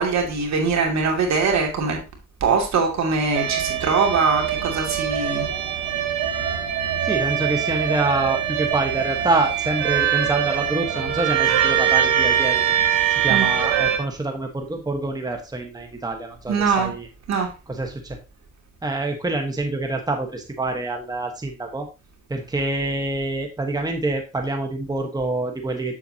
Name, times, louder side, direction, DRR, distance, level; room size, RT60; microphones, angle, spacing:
voice 1, 0.0-2.0 2.4-5.5 13.3-13.5 16.5-16.9 17.3-17.5, right 5 dB, 65° right, 2.7 m, -22 dB
sound 1, 3.3-14.0, right 9 dB, 90° right, 1.3 m, -23 dB
voice 2, 7.0-12.8 13.1-17.1 17.7-18.2 18.8-21.9 22.3-25.9, right 2 dB, 15° right, 1.3 m, -26 dB
7.6 x 7.4 x 2.8 m
cardioid pair, 90°, 30 cm